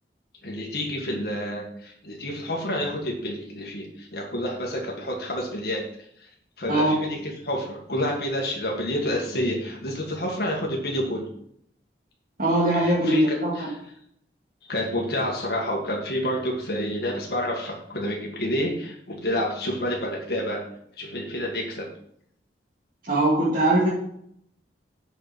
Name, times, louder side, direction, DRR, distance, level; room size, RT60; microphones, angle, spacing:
voice 1, 0.4-5.8 6.6-11.3 12.7-13.7 14.7-20.6 21.0-21.9, equal, 60° left, -1 dB, 1.7 m, -29 dB
voice 2, 6.7-7.0 12.4-13.5 23.1-23.9, right 1 dB, 50° right, -8 dB, 2.2 m, -21 dB
8.2 x 5.5 x 6.0 m, 0.70 s
head